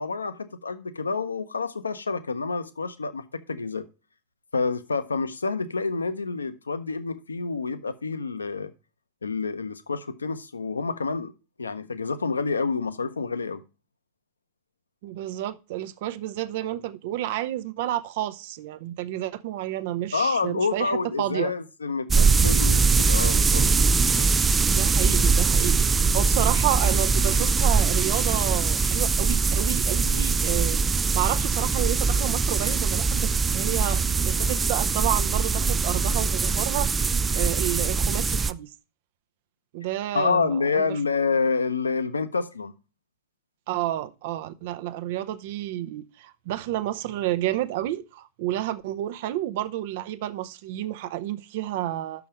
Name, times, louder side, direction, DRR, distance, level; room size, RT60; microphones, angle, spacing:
voice 1, 0.0-3.8 4.5-8.7 9.2-11.3 11.6-13.6 20.1-23.7 24.1-24.3 40.1-42.7, left 4 dB, 75° left, 0.7 m, -28 dB
voice 2, 15.0-21.5 24.7-38.7 39.7-41.0 43.7-52.2, right 13 dB, 50° right, 0.7 m, -30 dB
sound 1, 22.1-38.5, right 5 dB, 15° right, 0.4 m, -22 dB
6.4 x 5.9 x 7.2 m
figure-of-eight pair, 90°, 0 cm